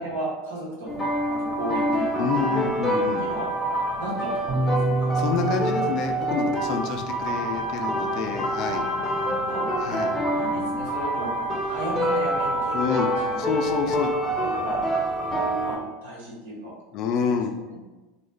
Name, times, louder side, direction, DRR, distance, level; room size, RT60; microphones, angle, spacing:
voice 1, 0.0-3.5 4.0-5.2 8.5-9.7 10.0-11.3 11.7-13.4 13.8-13.9 14.4-14.9 15.6-16.7 17.2-17.4 17.7-17.8, right 1 dB, 80° right, -5 dB, 1.0 m, -35 dB
sound 1, 0.9-15.8, right 1 dB, 20° left, 0.7 m, -26 dB
voice 2, 2.2-3.3 5.1-8.8 9.8-10.1 12.7-13.1 13.4-14.1 16.9-17.5, left 6 dB, 55° left, 5 dB, 0.3 m, -28 dB
sound 2, 4.5-8.6, right 2 dB, 25° right, 0.8 m, -30 dB
2.3 x 2.0 x 3.2 m, 1.1 s
hypercardioid pair, 85°, 0 cm